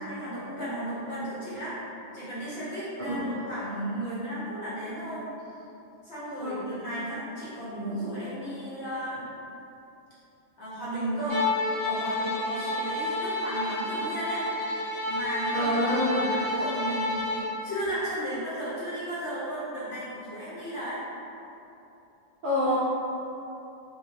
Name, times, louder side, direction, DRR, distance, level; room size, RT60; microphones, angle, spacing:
voice 1, 0.0-1.8 2.1-5.2 6.0-9.3 10.6-11.4 11.8-14.4 15.1-21.0, right 1 dB, 55° left, -11 dB, 1.4 m, -34 dB
Bowed string instrument, 11.3-17.5, left 2 dB, 30° left, 0.4 m, -30 dB
voice 2, 15.5-16.3 22.4-22.8, left 1 dB, 70° right, -7 dB, 0.4 m, -26 dB
3.2 x 3.1 x 3.0 m, 2.9 s
omnidirectional pair, 1.4 m